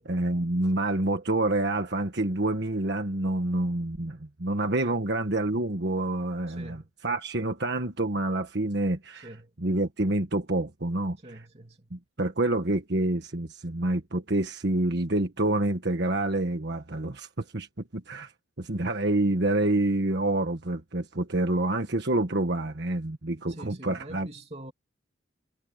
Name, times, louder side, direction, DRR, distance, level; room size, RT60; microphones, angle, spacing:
voice 1, 0.0-9.3 9.6-11.4 11.9-18.3 18.6-24.3, right 2 dB, 60° right, 1.5 m, -27 dB
voice 2, 4.7-5.0 6.5-6.9 9.2-9.5 11.2-11.9 23.5-24.7, right 1 dB, 35° right, 3.0 m, -45 dB
head